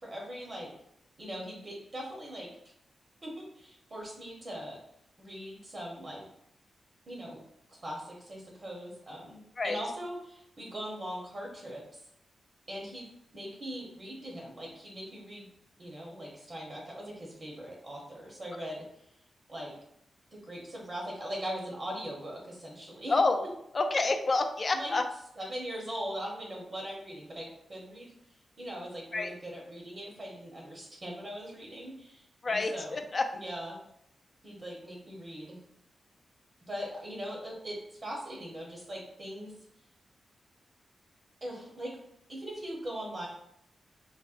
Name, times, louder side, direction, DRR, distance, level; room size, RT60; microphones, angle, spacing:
voice 1, 0.0-0.7 1.2-2.5 3.2-4.8 5.2-6.3 7.1-7.4 7.7-12.0 12.7-13.1 13.3-15.5 15.8-18.8 19.5-19.7 20.3-23.1 24.7-24.9 25.4-28.1 28.6-33.0 33.3-33.8 34.4-35.6 36.6-39.5 41.4-42.0 42.3-43.3, equal, 45° right, -2 dB, 0.8 m, -40 dB
voice 2, 23.1-23.5 23.7-25.0 29.1-29.3 32.4-33.2, left 3 dB, 45° left, 6 dB, 0.3 m, -28 dB
4.0 x 2.1 x 2.4 m, 0.76 s
cardioid pair, 80°, 0 cm